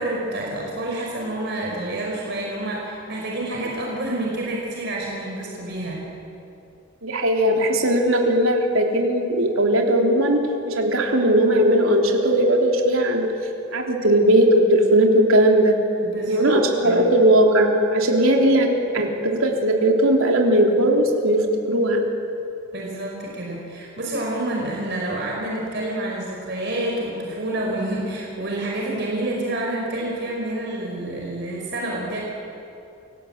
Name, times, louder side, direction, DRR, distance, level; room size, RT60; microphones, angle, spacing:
voice 1, 0.0-6.1 16.0-16.5 16.8-17.1 22.7-32.2, right 1 dB, 55° right, -2 dB, 4.8 m, -28 dB
voice 2, 7.0-10.4 10.7-13.2 13.7-15.7 16.3-18.7 18.9-22.0, right 1 dB, 80° right, 1 dB, 3.5 m, -18 dB
29.0 x 17.5 x 8.8 m, 2.7 s
head